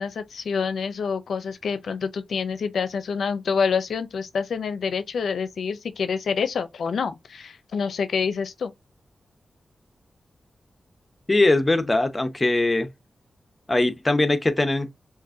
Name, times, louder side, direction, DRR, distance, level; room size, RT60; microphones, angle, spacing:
voice 1, 0.0-8.7, left 5 dB, 90° left, 0.5 m, -27 dB
voice 2, 11.3-12.9 13.7-14.9, left 2 dB, 25° left, 0.8 m, -21 dB
5.8 x 2.5 x 2.6 m
cardioid pair, 70°, 0 cm